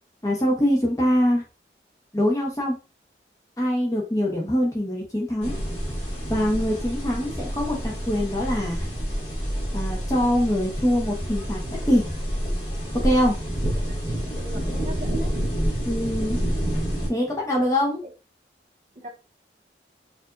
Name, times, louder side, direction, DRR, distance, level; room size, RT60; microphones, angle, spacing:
voice 1, 0.2-1.4 2.1-2.7 3.6-5.5 6.3-8.9 9.7-11.6 11.9-12.1 13.0-13.4 15.9-16.4 17.1-18.0, equal, 20° left, -2 dB, 0.9 m, -23 dB
sound 1, 5.4-17.1, equal, 35° left, 1.4 m, -28 dB
voice 2, 14.4-15.3 18.0-18.1 18.9-19.1, equal, 45° right, -4 dB, 1.4 m, -40 dB
4.6 x 2.6 x 2.5 m, 0.31 s
head